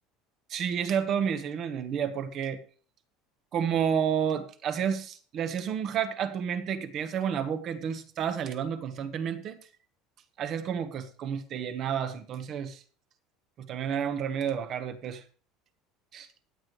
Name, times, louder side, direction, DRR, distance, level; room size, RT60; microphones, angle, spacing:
voice 1, 0.5-2.6 3.5-9.6 10.4-12.8 13.6-15.2 16.1-16.3, right 8 dB, 35° right, 1.1 m, -30 dB
16.0 x 9.6 x 3.1 m
cardioid pair, 175°, 0 cm